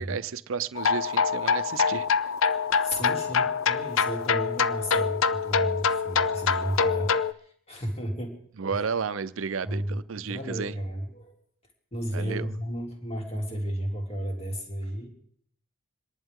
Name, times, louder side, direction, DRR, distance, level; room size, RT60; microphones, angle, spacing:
voice 1, 0.0-2.1 8.6-10.7 12.1-12.5, right 6 dB, 70° right, 0.6 m, -32 dB
sound 1, 0.7-7.3, left 6 dB, 70° left, 0.5 m, -25 dB
voice 2, 2.5-7.3 7.7-8.3 8.7-8.9 9.6-11.4 11.9-15.1, equal, 30° left, 3.0 m, -33 dB
27.0 x 11.0 x 3.7 m
head